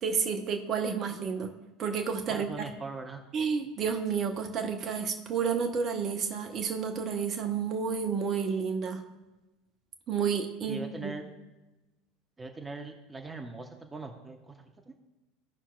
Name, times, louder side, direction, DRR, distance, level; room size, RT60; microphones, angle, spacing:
voice 1, 0.0-1.5 1.8-2.5 3.3-9.0 10.1-11.1, right 6 dB, 40° right, 5 dB, 0.9 m, -30 dB
voice 2, 2.3-3.2 10.7-11.2 12.4-14.9, right 3 dB, 15° right, 4 dB, 0.8 m, -41 dB
15.5 x 5.7 x 2.4 m, 1.1 s
figure-of-eight pair, 70°, 0 cm